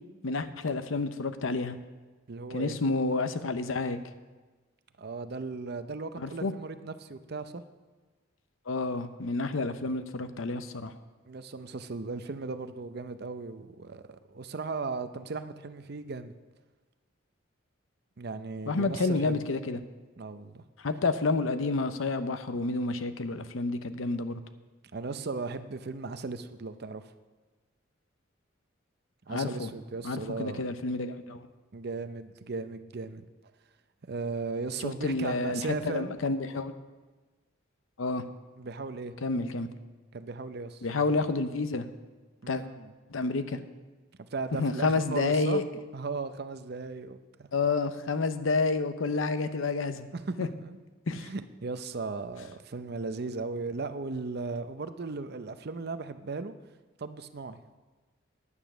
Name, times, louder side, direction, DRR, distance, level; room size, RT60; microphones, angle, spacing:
voice 1, 0.2-1.8 2.5-4.0 6.2-6.5 8.7-10.9 18.7-19.8 20.8-24.4 29.3-29.7 30.0-31.5 34.8-36.7 38.0-38.2 39.2-39.7 40.8-41.9 42.5-42.6 43.1-43.6 44.6-45.6 47.5-50.1 50.4-50.5 51.1-51.3, left 3 dB, 80° left, 10 dB, 0.7 m, -29 dB
voice 2, 2.3-2.8 5.0-7.6 11.3-14.0 14.3-16.3 18.2-19.4 20.2-20.6 24.9-27.1 29.3-30.7 31.7-33.2 34.1-36.1 38.6-39.1 40.1-40.8 42.4-42.9 44.3-47.5 50.1-50.8 51.1-56.5 57.0-57.6, right 4 dB, 55° right, 11 dB, 0.6 m, -37 dB
9.8 x 9.0 x 6.1 m, 1.3 s
head